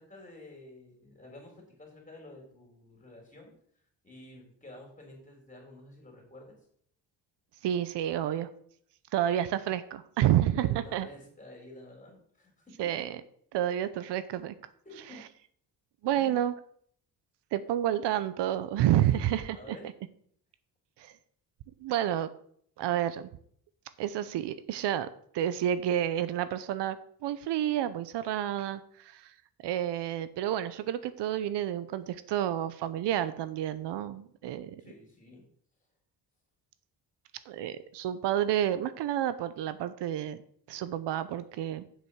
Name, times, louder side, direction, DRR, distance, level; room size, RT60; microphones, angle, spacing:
voice 1, 0.0-3.5 4.0-6.6 10.6-12.9 14.9-15.2 16.1-16.4 19.1-19.2 19.5-19.9 34.8-35.4, left 2 dB, 20° left, 0 dB, 3.6 m, -50 dB
voice 2, 7.6-8.5 9.1-11.1 12.8-13.1 13.5-14.5 16.0-16.5 17.5-19.8 21.0-21.1 21.8-22.3 22.8-23.3 24.0-25.1 25.3-27.0 27.2-29.3 29.6-34.8 37.5-40.4 40.7-41.8, right 11 dB, 85° right, 13 dB, 0.8 m, -29 dB
7.6 x 5.6 x 6.3 m, 0.62 s
cardioid pair, 120°, 41 cm